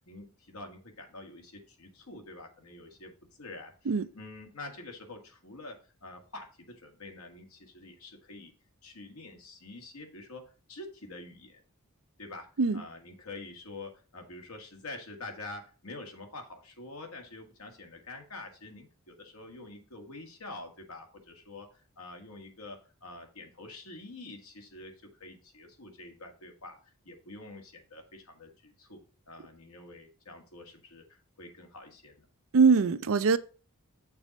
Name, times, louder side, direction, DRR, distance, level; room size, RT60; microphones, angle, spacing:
voice 1, 0.1-3.1 3.4-8.5 8.8-10.4 10.7-11.6 12.2-12.5 12.7-32.3, left 2 dB, 80° left, 1.8 m, -46 dB
voice 2, 32.5-33.4, right 5 dB, 65° right, 0.5 m, -22 dB
6.8 x 4.1 x 6.2 m
head